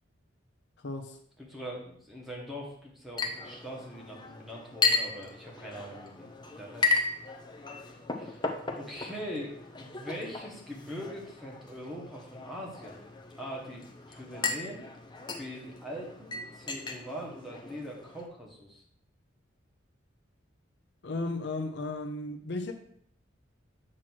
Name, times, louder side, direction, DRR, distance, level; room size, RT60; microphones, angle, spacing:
voice 1, 0.8-1.2 21.0-22.7, left 2 dB, 60° left, 5 dB, 0.6 m, -34 dB
voice 2, 1.4-7.0 8.2-8.4 8.8-13.0 13.4-13.8 14.1-14.8 15.4-18.8, equal, ahead, -3 dB, 1.4 m, -42 dB
Chink clink, 3.2-18.2, left 4 dB, 20° left, 0.7 m, -35 dB
7.4 x 3.1 x 6.1 m, 0.67 s
head